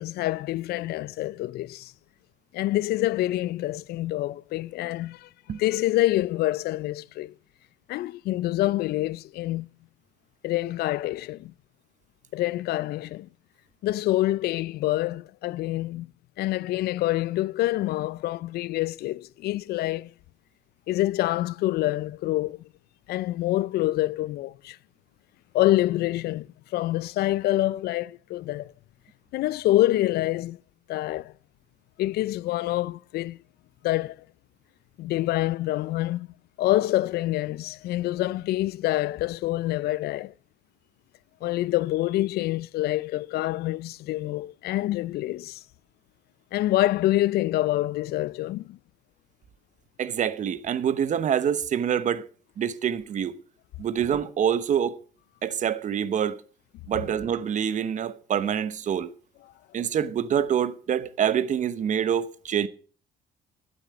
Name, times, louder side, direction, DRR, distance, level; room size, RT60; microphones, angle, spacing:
voice 1, 0.0-1.9 2.5-7.3 7.9-9.7 10.4-11.5 12.3-13.3 13.8-16.1 16.4-20.1 20.9-22.6 23.1-24.8 25.5-26.5 26.7-28.7 29.3-30.6 30.9-31.3 32.0-33.4 33.8-34.2 35.0-36.3 36.6-40.3 41.4-45.6 46.5-48.8, left 16 dB, 70° left, 0.5 m, -26 dB
voice 2, 50.0-52.2 52.6-53.3 53.8-55.0 55.4-56.4 56.9-59.1 59.7-62.7, right 8 dB, 45° right, 0.9 m, -26 dB
12.5 x 8.1 x 6.4 m
cardioid pair, 110°, 17 cm